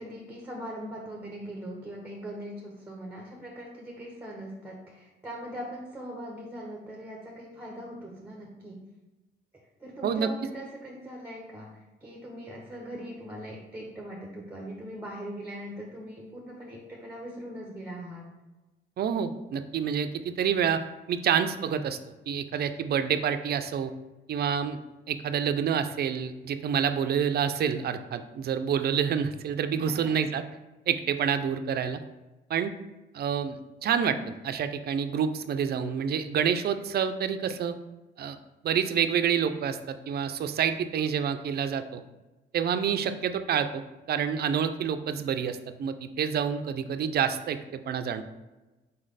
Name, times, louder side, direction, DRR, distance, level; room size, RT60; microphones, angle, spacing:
voice 1, 0.0-8.8 9.8-18.3 29.8-30.1, equal, 10° right, -1 dB, 0.7 m, -41 dB
voice 2, 19.0-20.8 21.1-22.0 22.3-23.9 24.3-24.8 25.1-30.4 30.9-32.0 32.5-32.7 33.1-37.7 38.2-38.4 38.6-42.0 42.5-43.8 44.1-48.2, right 7 dB, 55° right, 10 dB, 0.4 m, -28 dB
4.1 x 3.2 x 3.9 m, 1.1 s
cardioid pair, 90°, 20 cm